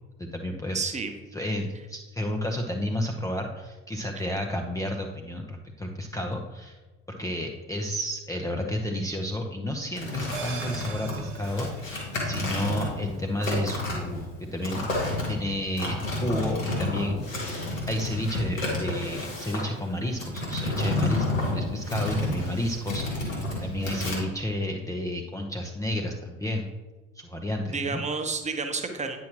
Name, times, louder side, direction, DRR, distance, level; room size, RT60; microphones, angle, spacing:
voice 1, 0.2-0.8 1.3-6.8 7.1-11.7 12.2-14.9 15.3-17.2 17.9-26.7 27.2-28.0, left 1 dB, 10° left, 2 dB, 0.6 m, -31 dB
voice 2, 0.7-1.1 4.1-4.2 27.7-29.2, right 4 dB, 20° right, 6 dB, 0.9 m, -30 dB
sound 1, 9.9-24.2, left 2 dB, 85° left, 1.8 m, -31 dB
sound 2, 10.3-15.0 15.4-15.5, right 6 dB, 55° right, 1.1 m, -44 dB
9.3 x 6.1 x 2.9 m, 1.2 s
figure-of-eight pair, 60°, 38 cm